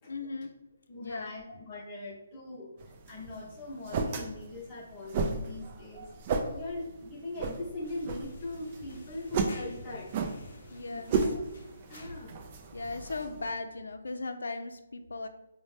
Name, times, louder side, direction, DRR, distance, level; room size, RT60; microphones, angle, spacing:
voice 1, 0.1-0.5 1.0-1.3 10.7-11.1 12.7-15.3, left 3 dB, 90° left, 7 dB, 0.5 m, -37 dB
voice 2, 0.9-6.1 6.5-10.1 10.4-10.5 10.9-11.4 11.9-12.4 12.8-13.0, left 2 dB, 20° left, -4 dB, 0.9 m, -41 dB
sound 1, 2.8-13.5, right 4 dB, 30° right, 0.3 m, -35 dB
sound 2, 7.8-12.5, left 1 dB, 45° left, 0.6 m, -52 dB
4.2 x 2.1 x 3.2 m, 0.94 s
hypercardioid pair, 165°, 0 cm